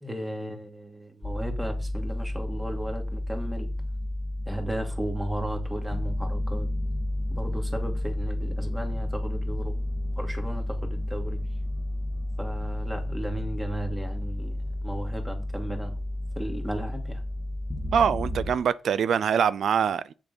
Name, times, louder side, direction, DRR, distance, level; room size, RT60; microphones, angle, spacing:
voice 1, 0.0-3.7 4.5-6.7 7.3-9.8 10.2-11.4 12.4-15.9 16.4-17.2, right 1 dB, 10° right, 2.5 m, -35 dB
sound 1, 1.2-18.6, left 1 dB, 15° left, 1.8 m, -31 dB
voice 2, 17.9-20.1, right 7 dB, 75° right, 0.4 m, -24 dB
8.2 x 7.0 x 5.3 m
cardioid pair, 110°, 0 cm